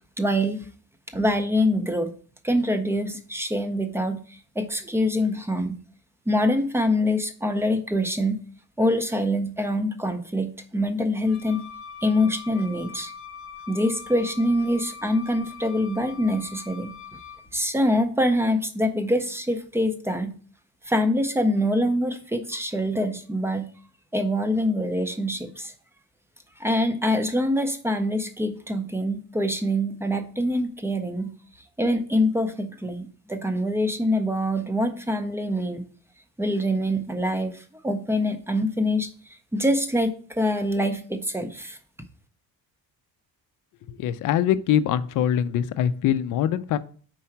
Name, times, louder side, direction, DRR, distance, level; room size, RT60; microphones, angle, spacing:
voice 1, 0.2-0.6 1.1-2.1 2.4-5.8 6.3-8.4 8.8-11.6 12.0-13.1 13.7-17.0 17.5-20.3 20.9-23.7 24.1-25.7 26.6-31.3 31.8-35.8 36.4-39.1 39.5-41.8, left 1 dB, 5° right, 7 dB, 0.4 m, -25 dB
Wind instrument woodwind instrument, 11.2-17.5, left 6 dB, 35° left, 0.9 m, -42 dB
voice 2, 43.9-46.8, left 10 dB, 55° left, 13 dB, 0.4 m, -23 dB
4.8 x 4.3 x 5.7 m, 0.43 s
cardioid pair, 175°, 37 cm